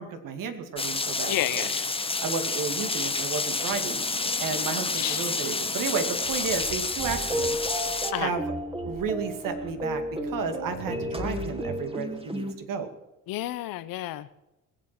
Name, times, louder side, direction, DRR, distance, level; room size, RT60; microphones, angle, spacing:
voice 1, 0.0-1.7 2.2-7.6 7.9-8.5 8.8-12.9, right 5 dB, 65° right, 7 dB, 2.4 m, -32 dB
Rain, 0.8-8.1, left 3 dB, 15° left, 1.0 m, -29 dB
voice 2, 1.3-1.9 5.0-5.2 8.1-8.3 13.3-14.5, left 15 dB, 70° left, 14 dB, 1.0 m, -31 dB
sound 1, 3.8-7.5 8.3-11.9, right 2 dB, 85° right, 7.2 m, -44 dB
sound 2, 7.0-12.5, right 1 dB, 15° right, 2.3 m, -33 dB
21.0 x 8.4 x 6.0 m, 0.96 s
supercardioid pair, 75°, 36 cm